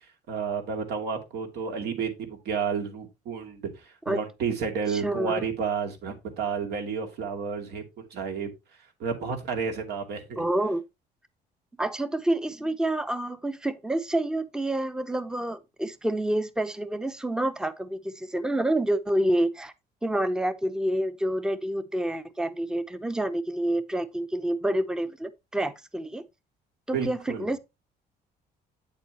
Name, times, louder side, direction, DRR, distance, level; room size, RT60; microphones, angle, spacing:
voice 1, 0.3-8.5 9.0-10.4 26.9-27.5, right 6 dB, 75° right, 2.5 m, -31 dB
voice 2, 4.9-5.4 10.4-10.8 11.8-19.7 20.0-26.2 26.9-27.6, right 1 dB, 5° right, 0.7 m, -28 dB
8.6 x 7.1 x 2.9 m
cardioid pair, 110°, 17 cm